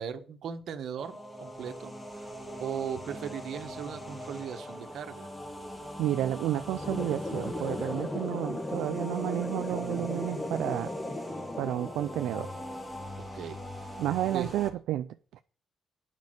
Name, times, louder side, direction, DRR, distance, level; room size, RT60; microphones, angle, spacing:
voice 1, 0.0-1.9 2.2-2.3 2.6-5.3 13.3-13.9 14.2-14.5, right 8 dB, 70° right, 1.3 m, -38 dB
sound 1, 1.0-14.7, equal, 10° left, 3.0 m, -41 dB
voice 2, 6.0-10.9 11.6-12.5 14.0-15.4, right 13 dB, 85° right, 0.4 m, -31 dB
sound 2, 6.8-12.8, left 2 dB, 25° left, 1.4 m, -37 dB
9.5 x 5.3 x 7.8 m
cardioid pair, 90°, 0 cm